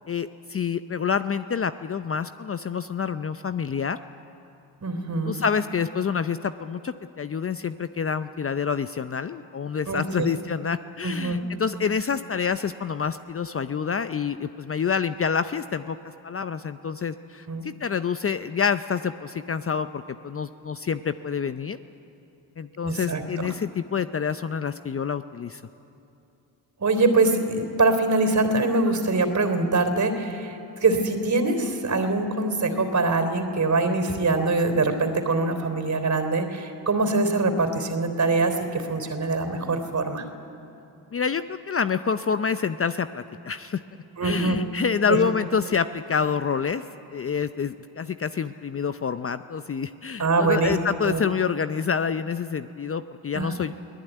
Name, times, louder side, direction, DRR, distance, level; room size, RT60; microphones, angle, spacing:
voice 1, 0.1-4.0 5.3-16.0 16.2-21.8 22.6-25.6 41.1-43.8 44.2-46.8 47.1-53.7, left 6 dB, 30° left, 11 dB, 0.7 m, -27 dB
voice 2, 4.8-5.4 9.9-10.3 11.0-11.4 17.5-17.6 22.8-23.5 26.8-40.2 44.2-44.6 45.1-45.2 50.2-50.8 51.0-51.2 53.3-53.5, right 3 dB, 40° right, 7 dB, 3.5 m, -23 dB
23.5 x 16.5 x 9.2 m, 2.8 s
supercardioid pair, 60°, 43 cm